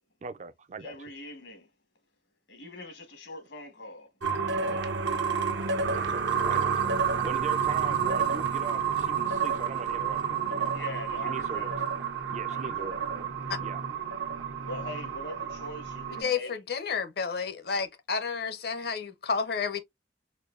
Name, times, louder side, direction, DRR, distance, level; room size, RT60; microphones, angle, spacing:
voice 1, 0.2-0.9 5.9-6.7 7.2-10.7 11.2-11.7 12.3-13.3 13.6-13.8, right 4 dB, 40° right, 0.3 m, -40 dB
voice 2, 0.8-1.7 2.5-4.1 4.6-5.0 6.2-6.6 10.7-11.9 12.5-13.2 13.5-13.7 14.6-16.6, left 2 dB, 80° left, 1.3 m, -42 dB
sound 1, 4.2-16.2, right 6 dB, 80° right, 0.7 m, -29 dB
voice 3, 16.2-19.8, left 5 dB, 60° left, 0.6 m, -31 dB
4.3 x 2.6 x 2.4 m
head